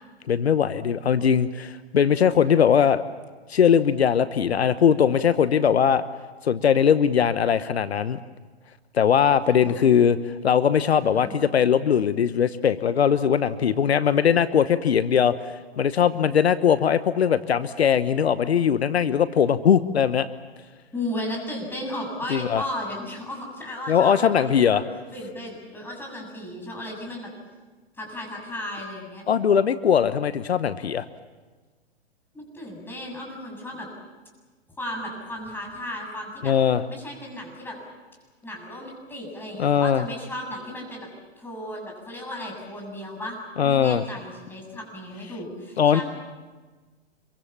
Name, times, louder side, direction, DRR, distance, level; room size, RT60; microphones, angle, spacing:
voice 1, 0.3-3.0 3.5-6.0 6.4-8.2 8.9-10.2 10.4-15.3 15.8-20.3 22.3-22.6 23.9-24.8 29.3-31.0 36.4-36.8 39.6-40.1 43.6-44.0 45.8-46.0, left 8 dB, 75° left, 13 dB, 1.0 m, -20 dB
voice 2, 9.5-10.0 11.1-11.5 20.9-24.8 25.1-27.3 28.0-29.2 32.3-33.9 34.8-36.6 36.9-37.8 38.4-43.4 43.6-46.0, left 1 dB, 5° left, 0 dB, 7.4 m, -35 dB
26.0 x 23.5 x 7.3 m, 1.3 s
hypercardioid pair, 120°, 32 cm